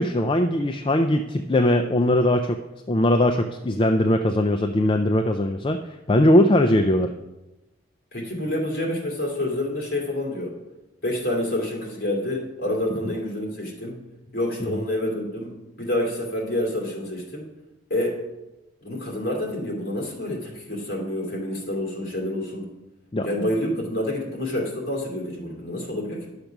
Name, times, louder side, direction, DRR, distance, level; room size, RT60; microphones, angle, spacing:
voice 1, 0.0-2.6 2.9-5.8 6.1-7.1 14.6-14.8 23.1-23.3, left 1 dB, 25° left, 5 dB, 0.4 m, -20 dB
voice 2, 8.1-10.5 11.0-14.0 14.3-17.5 17.9-18.2 18.8-22.7 23.2-26.4, left 1 dB, 50° left, -2 dB, 2.7 m, -28 dB
10.5 x 6.6 x 5.9 m, 1.0 s
head